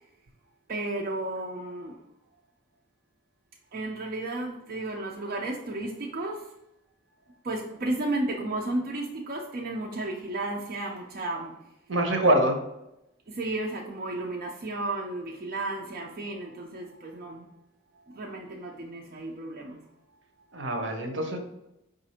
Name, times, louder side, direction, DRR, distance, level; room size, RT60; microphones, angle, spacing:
voice 1, 0.7-1.9 3.7-6.4 7.5-11.5 13.4-17.4 18.2-19.8, right 2 dB, 45° right, -1 dB, 0.5 m, -33 dB
voice 2, 11.9-12.6 20.5-21.4, right 1 dB, 70° right, 4 dB, 0.8 m, -24 dB
4.9 x 2.6 x 4.2 m, 0.87 s
head